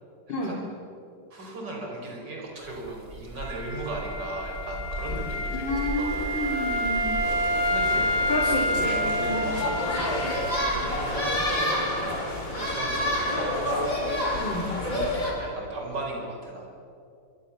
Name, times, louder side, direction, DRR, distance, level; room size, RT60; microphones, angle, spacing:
voice 1, 0.3-0.7 1.3-6.3 7.6-8.1 9.1-12.1 12.5-13.7 14.4-16.7, right 2 dB, 70° right, 0 dB, 5.6 m, -37 dB
sound 1, 2.6-11.7, equal, 35° right, 3.7 m, -38 dB
Wind instrument woodwind instrument, 3.4-11.1, equal, 30° left, 6.1 m, -29 dB
voice 2, 5.5-7.1 8.3-9.5 14.4-14.7, left 1 dB, 85° left, -2 dB, 3.7 m, -30 dB
sound 2, 7.2-15.3, left 1 dB, 45° left, 5.2 m, -29 dB
26.0 x 24.0 x 7.3 m, 2.6 s
omnidirectional pair, 1.9 m